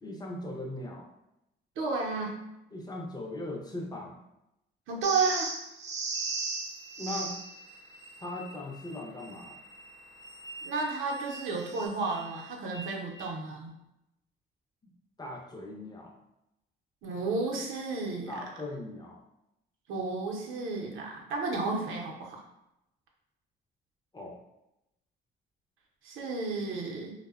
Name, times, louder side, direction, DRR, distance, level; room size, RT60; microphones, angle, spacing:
voice 1, 0.0-1.1 2.7-4.2 7.0-7.4 8.2-9.6 14.8-14.9 15.2-16.1 18.3-19.2 24.1-24.4, left 1 dB, 20° left, 0 dB, 0.5 m, -39 dB
voice 2, 1.8-2.4 4.9-5.5 10.6-13.7 17.0-18.4 19.9-22.4 26.0-27.1, right 3 dB, 85° right, -1 dB, 0.6 m, -32 dB
sound 1, 5.0-7.5 11.6-11.9, right 3 dB, 35° right, 0.4 m, -35 dB
sound 2, 6.1-13.3, right 3 dB, 85° left, 0.8 m, -49 dB
2.6 x 2.0 x 2.3 m, 0.87 s
cardioid pair, 90°, 20 cm